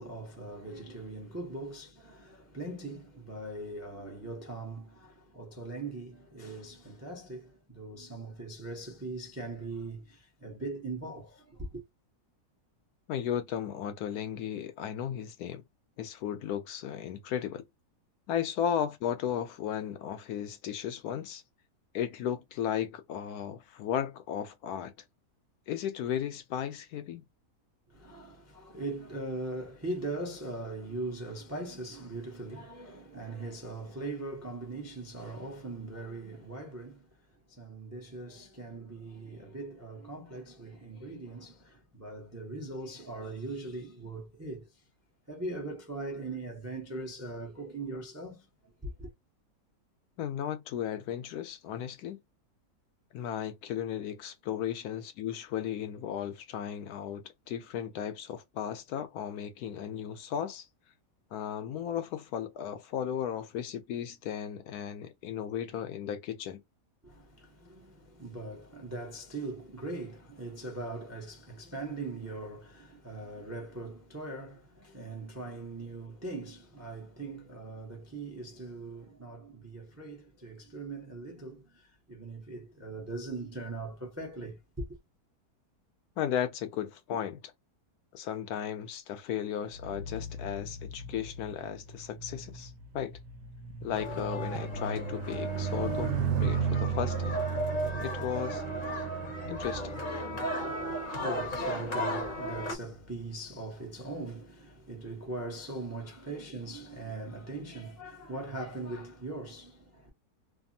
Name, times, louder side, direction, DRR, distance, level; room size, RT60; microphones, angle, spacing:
voice 1, 0.0-11.8 27.9-44.8 45.3-49.1 67.0-85.0 100.4-110.1, right 2 dB, 20° right, 0.4 m, -40 dB
voice 2, 13.1-15.6 16.0-17.6 18.3-21.4 21.9-24.9 25.7-27.2 50.2-52.2 53.1-60.7 61.3-66.6 86.2-87.4 88.1-93.1 93.8-97.4 98.0-98.6 99.5-100.1, left 9 dB, 75° left, 1.0 m, -35 dB
sound 1, 89.7-101.3 102.1-102.4, right 6 dB, 70° right, 1.1 m, -35 dB
sound 2, 93.9-102.8, equal, 40° left, 0.7 m, -35 dB
3.3 x 2.0 x 2.5 m
omnidirectional pair, 1.8 m